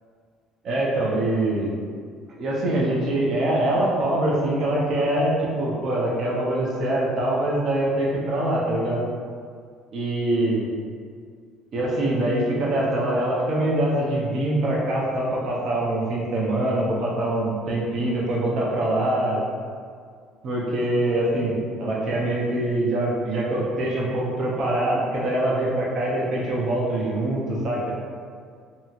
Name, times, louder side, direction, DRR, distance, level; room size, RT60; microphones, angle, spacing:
voice 1, 0.6-1.7 2.4-9.0 9.9-10.7 11.7-19.4 20.4-27.8, right 1 dB, 50° right, -4 dB, 0.6 m, -24 dB
2.7 x 2.7 x 2.4 m, 2.1 s
cardioid pair, 115°, 0 cm